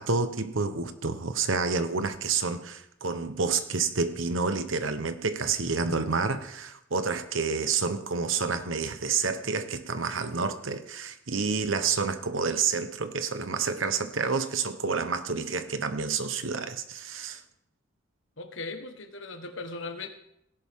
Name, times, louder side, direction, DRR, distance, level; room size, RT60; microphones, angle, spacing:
voice 1, 0.0-17.4, right 5 dB, 85° right, 10 dB, 1.1 m, -29 dB
voice 2, 18.4-20.1, left 3 dB, 75° left, 7 dB, 1.4 m, -38 dB
17.0 x 11.0 x 3.7 m, 0.77 s
head